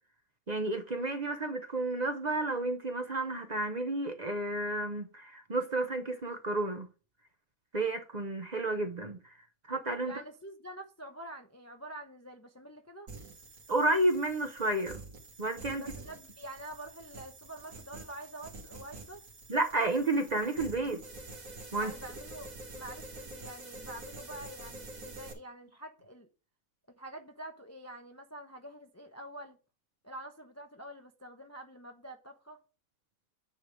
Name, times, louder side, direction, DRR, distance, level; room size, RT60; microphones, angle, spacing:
voice 1, 0.5-6.9 7.7-9.2 9.7-10.1 13.7-15.0 15.4-15.8 19.5-21.0 21.7-21.9, right 2 dB, 35° right, 0.8 m, -31 dB
voice 2, 10.0-13.1 15.7-19.3 21.8-26.3 27.0-29.6 30.0-32.6, right 1 dB, 15° left, 0.5 m, -47 dB
sound 1, 13.1-25.3, right 2 dB, 70° right, 2.1 m, -47 dB
9.2 x 3.4 x 6.1 m
omnidirectional pair, 1.5 m